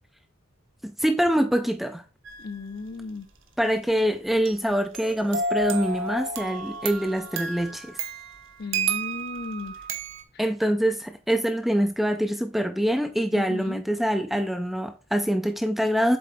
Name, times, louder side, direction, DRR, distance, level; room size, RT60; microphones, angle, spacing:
voice 1, 0.8-2.0 3.6-8.0 10.4-16.2, equal, ahead, 0.3 m, -25 dB
sound 1, 2.2-2.7 4.5-10.2, right 4 dB, 65° right, 0.9 m, -32 dB
voice 2, 2.4-3.3 8.6-9.7 13.3-13.8, left 3 dB, 50° left, 0.6 m, -35 dB
Telephone, 4.8-7.9 8.3-8.4, left 1 dB, 90° right, 2.5 m, -56 dB
7.8 x 3.8 x 3.3 m
head